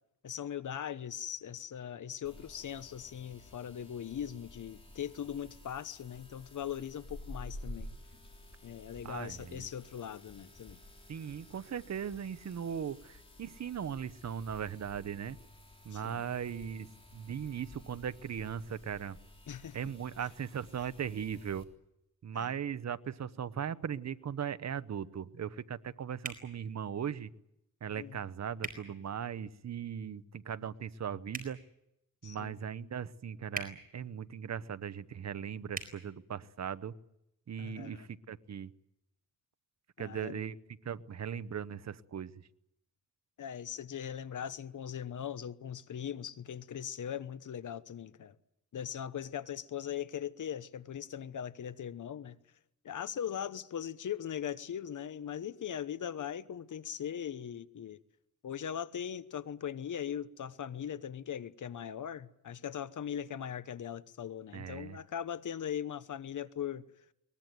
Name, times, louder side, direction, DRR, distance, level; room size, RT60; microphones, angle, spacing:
voice 1, 0.2-7.9 8.6-10.8 15.9-16.3 19.5-19.8 22.3-22.5 28.0-28.2 32.2-32.5 37.6-38.1 40.0-40.4 43.4-48.4 48.7-52.4 52.8-58.0 58.4-66.9, left 9 dB, 75° left, 1.0 m, -40 dB
sound 1, 2.2-21.6, left 1 dB, 20° left, 3.5 m, -52 dB
voice 2, 9.0-9.7 11.1-15.4 15.8-19.2 19.7-21.7 22.2-27.3 27.8-31.6 32.2-36.9 37.5-38.7 40.0-40.6 40.8-42.3 64.5-65.0, right 8 dB, 60° right, 0.9 m, -38 dB
sound 2, 26.2-26.4 28.6-28.8 31.3-31.5 33.5-33.7 35.7-35.9, right 3 dB, 30° right, 4.4 m, -39 dB
22.0 x 20.0 x 9.3 m
wide cardioid pair, 145°, 31 cm